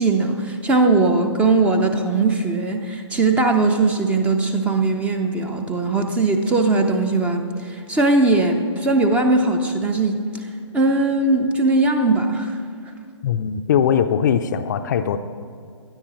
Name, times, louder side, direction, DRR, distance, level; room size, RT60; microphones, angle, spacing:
voice 1, 0.0-10.2 10.7-12.6, right 3 dB, 10° right, 5 dB, 0.6 m, -19 dB
voice 2, 13.2-15.2, left 8 dB, 35° left, 8 dB, 0.5 m, -20 dB
19.5 x 12.5 x 3.1 m, 2.3 s
figure-of-eight pair, 140°, 16 cm